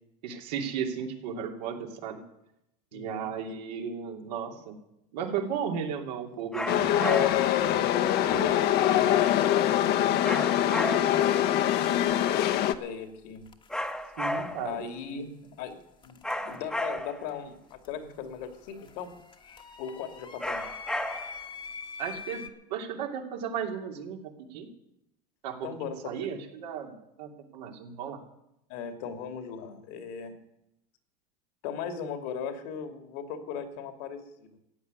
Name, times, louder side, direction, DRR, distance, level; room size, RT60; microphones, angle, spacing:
voice 1, 0.2-2.2 2.9-4.8 5.1-7.3 8.3-8.5 14.2-14.8 15.1-15.3 22.0-22.4 22.7-24.7 25.4-28.2, right 7 dB, 85° right, 2 dB, 2.9 m, -35 dB
voice 2, 2.9-3.3 7.6-10.0 11.1-11.7 12.8-13.4 14.6-15.3 15.6-19.1 19.8-20.6 25.6-26.3 28.7-30.4 31.6-34.5, left 7 dB, 75° left, 7 dB, 2.6 m, -38 dB
sound 1, 6.5-7.6 10.2-11.3 13.7-14.8 16.2-17.3 20.4-21.5, left 1 dB, 5° left, 1.1 m, -33 dB
Chatter / Subway metro underground, 6.7-12.7, left 11 dB, 55° left, 1.1 m, -24 dB
sound 2, 12.0-12.1 13.4-13.9 16.0-17.0 17.3-22.5, left 6 dB, 25° left, 1.2 m, -45 dB
14.5 x 8.4 x 9.6 m, 0.84 s
supercardioid pair, 115°, 20 cm